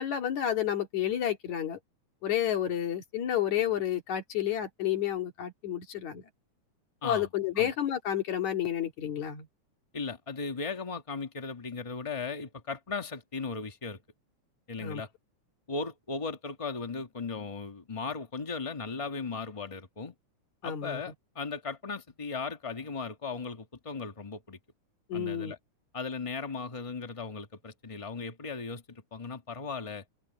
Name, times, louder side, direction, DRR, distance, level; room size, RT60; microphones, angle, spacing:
voice 1, 0.0-1.8 2.2-6.2 7.0-9.5 14.8-15.0 20.6-21.0 25.1-25.5, left 10 dB, 70° left, 3.5 m, -30 dB
voice 2, 9.9-14.0 14.7-15.1 15.7-20.1 20.6-24.6 25.1-25.6 25.9-30.0, left 4 dB, 30° left, 0.6 m, -37 dB
open air
omnidirectional pair, 3.4 m